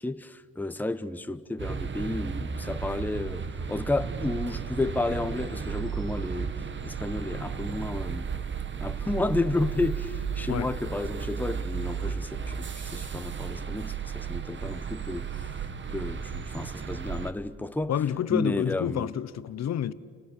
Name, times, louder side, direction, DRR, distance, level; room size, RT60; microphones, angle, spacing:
voice 1, 0.0-8.3 8.8-15.6 15.9-17.9 18.3-19.1, left 2 dB, 5° left, 1.0 m, -32 dB
sound 1, 1.6-17.3, right 6 dB, 40° right, 1.5 m, -34 dB
voice 2, 17.9-19.9, left 10 dB, 60° left, 1.1 m, -28 dB
30.0 x 29.0 x 6.9 m
cardioid pair, 90°, 30 cm